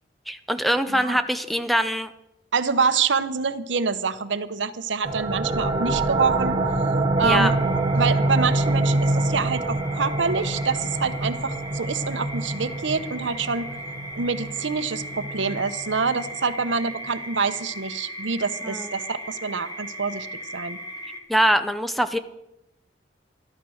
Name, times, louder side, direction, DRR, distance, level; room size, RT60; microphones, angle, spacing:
voice 1, 0.3-2.1 7.2-7.5 18.6-18.9 21.3-22.2, equal, ahead, 11 dB, 0.6 m, -23 dB
voice 2, 2.5-6.6 7.2-7.5 7.9-13.7 14.2-20.3 20.5-20.8, right 5 dB, 75° right, 12 dB, 0.9 m, -26 dB
sound 1, 5.0-16.4, right 2 dB, 25° right, 1.3 m, -26 dB
sound 2, 7.2-21.2, equal, 20° left, 1.9 m, -38 dB
12.5 x 12.5 x 6.3 m, 0.90 s
head